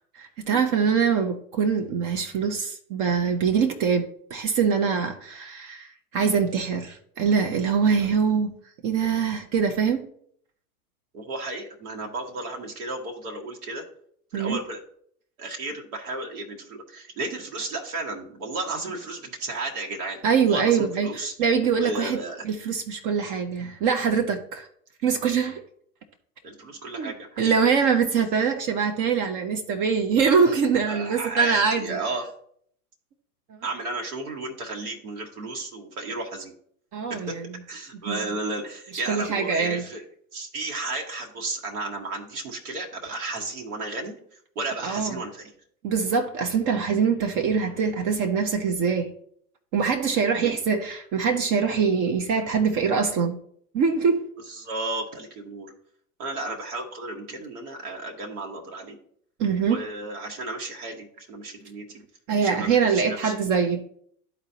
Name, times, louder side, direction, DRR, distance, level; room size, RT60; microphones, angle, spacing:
voice 1, 0.1-8.5 8.8-10.1 14.3-14.6 20.2-22.2 22.4-24.7 25.0-25.6 27.0-32.0 36.9-37.4 38.1-38.2 39.1-39.8 44.8-45.2 45.8-49.1 49.7-53.4 53.7-54.3 59.4-59.8 62.3-63.8, right 6 dB, 45° right, 0.9 m, -23 dB
voice 2, 11.1-13.8 14.3-14.8 15.4-21.3 21.8-22.5 26.4-27.5 30.8-32.3 33.6-36.5 37.1-37.4 37.7-40.0 40.3-44.2 44.5-45.5 50.4-50.5 54.5-55.7 56.2-59.0 59.6-61.9 62.4-63.4, right 2 dB, 75° right, 1.6 m, -33 dB
12.0 x 4.1 x 2.8 m
hypercardioid pair, 100°, 44 cm